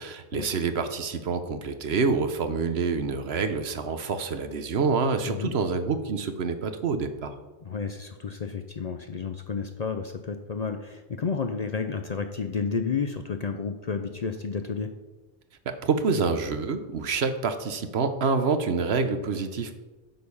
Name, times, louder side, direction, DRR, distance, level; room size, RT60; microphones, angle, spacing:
voice 1, 0.0-7.3 15.7-19.8, right 4 dB, 65° right, 9 dB, 1.1 m, -27 dB
voice 2, 7.6-14.9, left 5 dB, 45° left, 7 dB, 0.6 m, -31 dB
9.4 x 6.7 x 5.5 m, 1.2 s
omnidirectional pair, 1.2 m